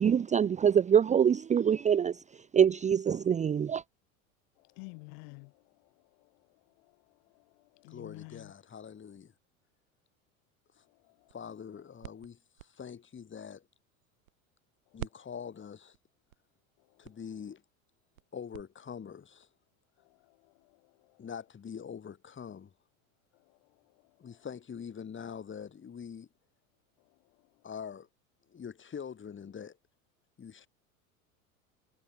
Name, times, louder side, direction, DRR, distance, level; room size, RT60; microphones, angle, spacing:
voice 1, 0.0-2.2 2.5-3.8, right 8 dB, 15° right, 0.6 m, -24 dB
voice 2, 4.6-5.7 6.2-6.3 6.8-6.9 7.3-8.5 11.0-11.3 20.1-21.2, left 40 dB or more, 55° left, 1.4 m, -51 dB
voice 3, 7.9-9.3 11.3-13.6 14.9-16.0 17.0-17.6 18.3-19.5 21.2-22.7 24.2-26.3 27.6-28.1 28.5-29.8 30.4-30.7, left 7 dB, 25° left, 6.8 m, -44 dB
sound 1, 11.0-14.7 15.0-18.6, right 15 dB, 75° right, 2.8 m, -50 dB
hypercardioid pair, 85°, 42 cm